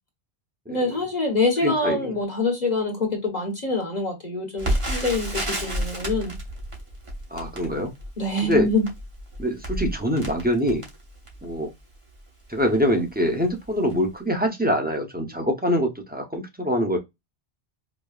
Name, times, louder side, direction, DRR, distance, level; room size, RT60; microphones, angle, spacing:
voice 1, 0.7-6.4 8.2-8.9, left 2 dB, 45° left, 1.1 m, -25 dB
voice 2, 1.6-2.1 7.3-7.9 8.4-8.7 9.4-10.8 11.4-11.7 12.5-17.0, equal, 10° right, 0.7 m, -24 dB
Crackle, 4.6-11.6 12.2-12.3 12.6-12.8 13.4-13.6 13.9-14.0, right 1 dB, 30° right, 1.0 m, -31 dB
5.0 x 2.1 x 2.4 m
omnidirectional pair, 1.1 m